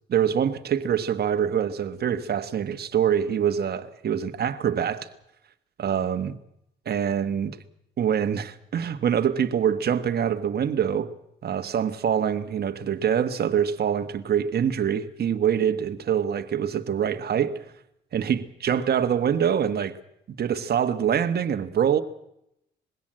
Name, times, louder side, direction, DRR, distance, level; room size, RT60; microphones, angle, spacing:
voice 1, 0.1-5.1 5.8-6.4 6.8-7.6 8.0-11.1 11.4-17.6 18.1-20.0 20.3-22.0, right 8 dB, 55° right, 1.4 m, -25 dB
21.0 x 16.5 x 7.7 m
cardioid pair, 90°, 20 cm